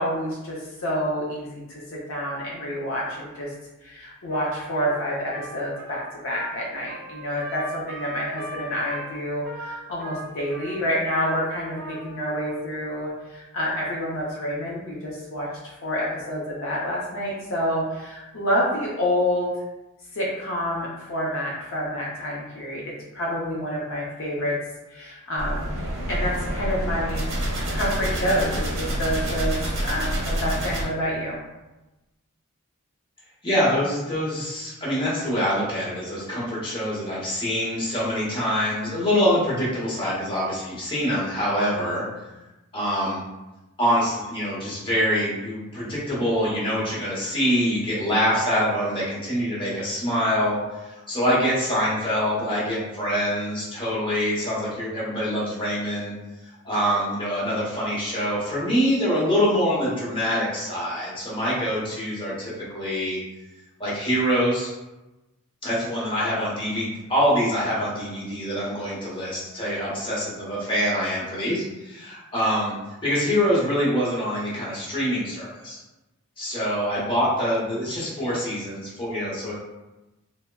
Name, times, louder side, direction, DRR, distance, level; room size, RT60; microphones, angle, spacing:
voice 1, 0.0-3.5 3.8-19.5 20.1-24.6 24.9-25.8 26.1-27.2 27.7-31.4, equal, 65° left, -4 dB, 0.5 m, -28 dB
Trumpet, 4.3-12.6, right 1 dB, 45° right, 0.4 m, -39 dB
sound 1, 25.4-30.8, right 1 dB, 60° right, 0.8 m, -27 dB
voice 2, 33.4-42.0 42.7-43.2 43.8-50.6 50.8-56.1 56.6-63.2 63.8-64.7 65.6-72.7 73.0-75.8 76.4-79.5, equal, 25° left, -7 dB, 0.8 m, -25 dB
3.4 x 2.0 x 2.2 m, 1.0 s
head